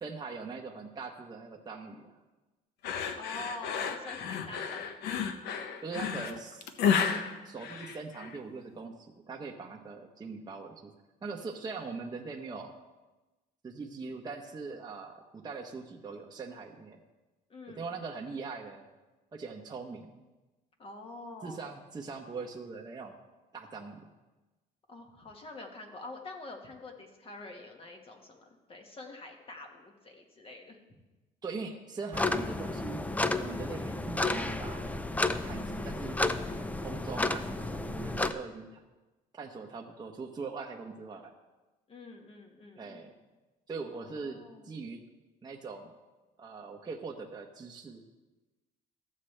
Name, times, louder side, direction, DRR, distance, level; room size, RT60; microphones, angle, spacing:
voice 1, 0.0-2.1 5.8-6.7 7.4-10.9 11.2-12.7 13.6-17.0 17.7-18.9 19.3-20.1 21.4-23.1 23.5-24.0 31.4-33.0 33.4-34.9 35.4-36.2 36.8-38.8 39.3-41.3 42.8-43.1 43.7-44.4 44.6-45.0 45.4-45.9 46.4-48.1, right 4 dB, 25° right, 0 dB, 0.9 m, -41 dB
sound 1, 2.8-8.4, left 7 dB, 75° left, 0.8 m, -32 dB
voice 2, 3.1-5.1 17.5-18.0 20.8-21.7 24.9-30.8 41.9-43.0 43.9-44.8, left 2 dB, 35° left, 2 dB, 1.6 m, -46 dB
sound 2, 32.1-38.3, left 2 dB, 10° left, 0.4 m, -32 dB
14.5 x 7.4 x 3.3 m, 1.1 s
cardioid pair, 110°, 17 cm